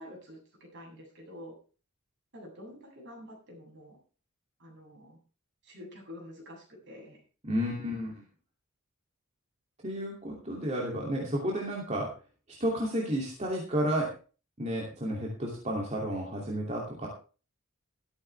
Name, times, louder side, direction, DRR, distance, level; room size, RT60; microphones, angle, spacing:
voice 1, 0.0-1.6 2.3-4.0 4.6-5.2 5.6-7.2, left 1 dB, 55° right, -1 dB, 7.7 m, -48 dB
voice 2, 7.4-8.2 9.8-12.1 12.6-14.1 14.6-17.1, equal, 30° right, -2 dB, 2.8 m, -31 dB
14.0 x 13.0 x 3.4 m, 0.36 s
head